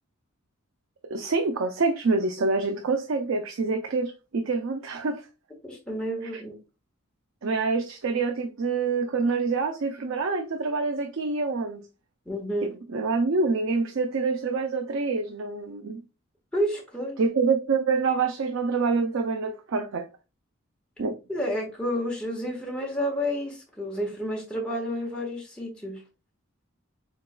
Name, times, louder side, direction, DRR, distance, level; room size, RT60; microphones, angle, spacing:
voice 1, 1.1-5.2 6.3-6.4 7.4-11.9 12.6-16.0 17.2-20.1 21.0-21.2, right 4 dB, 70° right, 0.5 m, -26 dB
voice 2, 5.6-6.6 12.2-12.8 16.5-17.2 21.3-26.0, equal, 5° left, 1.3 m, -30 dB
4.5 x 3.9 x 2.2 m
head